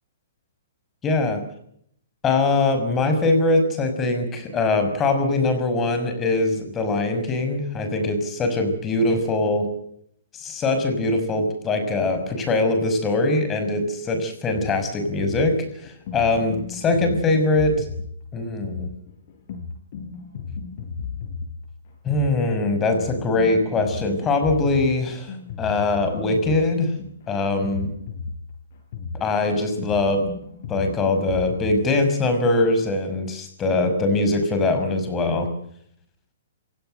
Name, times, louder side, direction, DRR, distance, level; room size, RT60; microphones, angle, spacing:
voice 1, 1.0-1.4 2.2-9.7 10.3-17.8 18.3-18.9 22.0-26.9 27.3-27.9 29.1-30.2 30.7-35.5, left 2 dB, 15° left, 7 dB, 5.8 m, -22 dB
sound 1, 14.5-31.8, left 5 dB, 50° left, 7.4 m, -35 dB
27.5 x 17.5 x 7.9 m, 0.70 s
hypercardioid pair, 150°, 0 cm